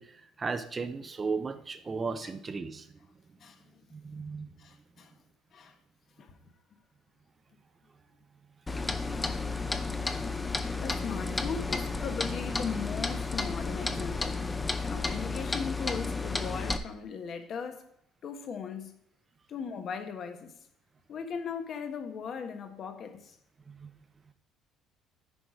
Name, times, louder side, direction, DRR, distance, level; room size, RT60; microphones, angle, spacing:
voice 1, 0.0-2.9 3.9-4.6 23.7-23.9, right 4 dB, 25° right, 0.6 m, -35 dB
voice 2, 4.6-5.1 5.5-5.8 6.2-6.3 10.8-14.4 14.8-17.9 18.2-18.9 19.5-20.5 21.1-23.4, left 6 dB, 50° left, 1.1 m, -38 dB
Clock, 8.7-16.8, left 3 dB, 15° left, 0.6 m, -32 dB
9.9 x 4.8 x 4.8 m
cardioid pair, 105°, 0 cm